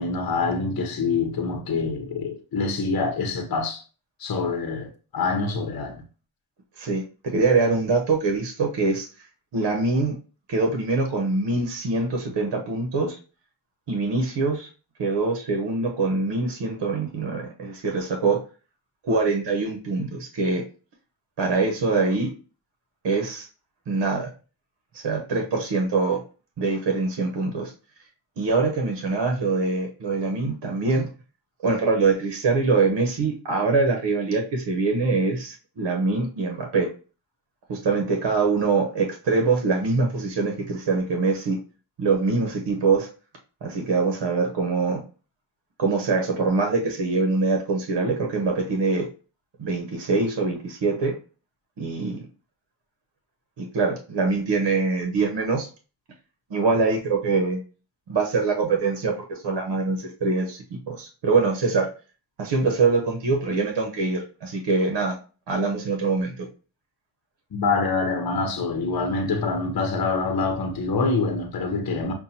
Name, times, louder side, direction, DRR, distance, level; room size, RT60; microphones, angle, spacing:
voice 1, 0.0-3.8 4.2-6.0 67.5-72.1, left 4 dB, 50° left, 0.8 m, -25 dB
voice 2, 6.8-9.1 9.5-10.1 10.5-13.1 13.9-14.7 15.0-18.4 19.0-20.6 21.4-22.3 23.0-23.5 23.9-24.3 25.0-26.2 26.6-27.7 28.4-31.1 31.6-36.9 37.7-41.6 42.0-43.1 43.6-45.0 45.8-49.1 49.6-51.2 51.8-52.2 53.6-55.7 56.5-57.6 58.1-60.6 60.9-61.9 62.4-65.2 65.5-66.5, right 3 dB, 70° right, 0.9 m, -24 dB
5.5 x 2.2 x 2.7 m
cardioid pair, 55°, 44 cm